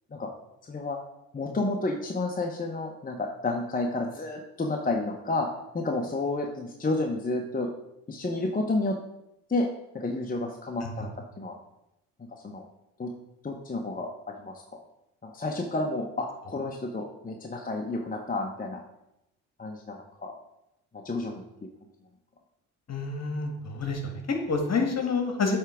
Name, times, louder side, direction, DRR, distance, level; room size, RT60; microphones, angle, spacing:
voice 1, 0.7-1.0 1.3-5.5 5.7-7.7 8.1-9.0 9.5-9.7 9.9-11.1 11.4-11.5 12.3-12.7 13.0-13.1 13.4-14.6 15.2-18.8 19.6-20.3 20.9-21.4, left 2 dB, 25° left, 1 dB, 0.9 m, -30 dB
voice 2, 22.9-25.6, left 4 dB, 45° left, 4 dB, 1.8 m, -28 dB
8.5 x 3.5 x 5.0 m, 0.85 s
supercardioid pair, 65°, 36 cm